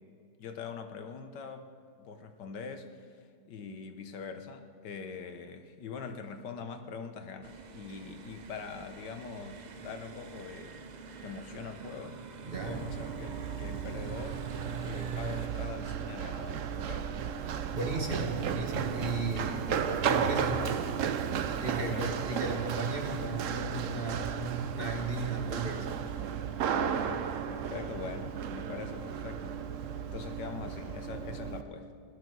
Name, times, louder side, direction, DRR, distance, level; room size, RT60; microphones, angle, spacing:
voice 1, 0.4-1.7 2.0-3.1 3.5-10.8 11.2-12.2 12.6-14.4 14.8-17.1 21.7-22.5 26.7-29.6 30.1-31.9, left 5 dB, 85° left, 7 dB, 1.6 m, -43 dB
sound 1, 7.4-15.5, right 6 dB, 80° right, 0.4 m, -44 dB
voice 2, 12.4-12.8 17.7-20.8 21.6-25.9, right 2 dB, 35° right, 1 dB, 1.7 m, -35 dB
Run, 12.5-31.6, right 8 dB, 60° right, 0.9 m, -34 dB
17.0 x 11.5 x 6.1 m, 2.2 s
omnidirectional pair, 1.8 m